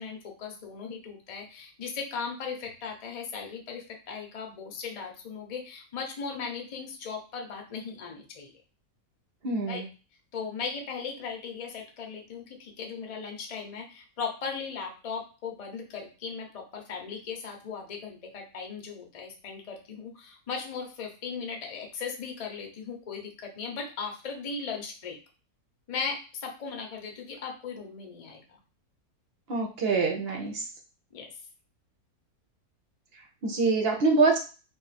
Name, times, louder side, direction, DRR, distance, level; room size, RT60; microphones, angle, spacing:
voice 1, 0.0-8.5 9.7-9.8 10.3-25.2 25.9-28.6 31.1-31.3, left 5 dB, 55° left, 2 dB, 0.4 m, -37 dB
voice 2, 9.4-9.9 29.5-30.7 33.1-34.4, right 3 dB, 55° right, 1 dB, 0.7 m, -25 dB
2.5 x 2.4 x 4.0 m, 0.34 s
omnidirectional pair, 1.7 m